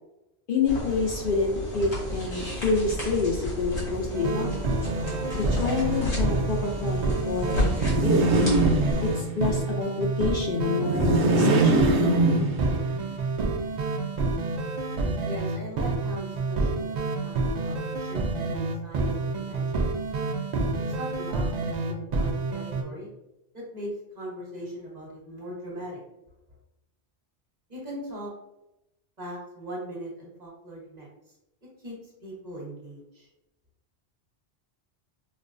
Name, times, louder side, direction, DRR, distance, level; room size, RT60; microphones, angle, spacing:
voice 1, 0.5-4.5 5.3-7.7 8.0-8.4 9.0-11.9, left 4 dB, 60° left, -2 dB, 0.6 m, -28 dB
sound 1, 0.7-9.1, equal, 80° left, 1.6 m, -32 dB
sound 2, 4.1-22.8, right 3 dB, 55° right, 0.5 m, -28 dB
sound 3, 7.7-9.4 10.8-13.0, right 2 dB, 85° right, 0.9 m, -22 dB
voice 2, 15.2-20.1 21.0-23.1 23.5-23.9 24.1-26.0 27.7-28.3 29.2-31.3 31.8-33.3, equal, 40° right, -5 dB, 1.2 m, -40 dB
5.1 x 2.2 x 2.5 m, 0.91 s
omnidirectional pair, 1.1 m